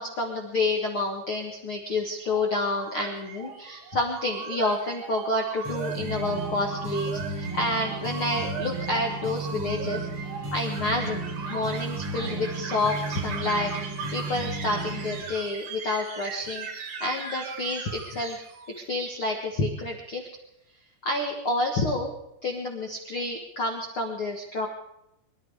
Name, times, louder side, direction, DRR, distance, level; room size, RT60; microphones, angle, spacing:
voice 1, 0.0-10.1 10.5-11.2 11.5-13.7 14.1-18.4 18.8-20.3 21.0-22.1 22.4-24.7, left 2 dB, 55° left, 1 dB, 1.4 m, -29 dB
sound 1, 2.3-18.8, right 5 dB, 55° right, 2.7 m, -39 dB
sound 2, 5.6-15.2, right 2 dB, 30° right, 6.2 m, -34 dB
24.0 x 12.0 x 4.9 m, 0.85 s
omnidirectional pair, 5.0 m